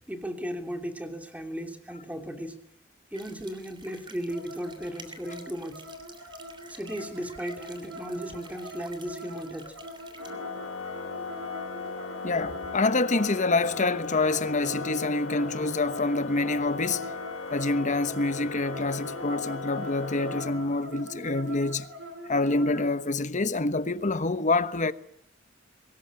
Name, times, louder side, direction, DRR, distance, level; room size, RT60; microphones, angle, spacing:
voice 1, 0.1-2.6 3.1-5.8 6.7-9.7, equal, 10° right, 3.0 m, -36 dB
sound 1, 3.1-10.3, right 3 dB, 25° right, 3.2 m, -50 dB
sound 2, 4.3-22.9, equal, 70° right, 6.7 m, -43 dB
Organ, 10.2-21.1, left 4 dB, 80° left, 2.0 m, -37 dB
voice 2, 12.2-17.1 17.5-21.9 22.3-24.9, left 3 dB, 40° left, 1.1 m, -26 dB
23.5 x 20.0 x 8.9 m
head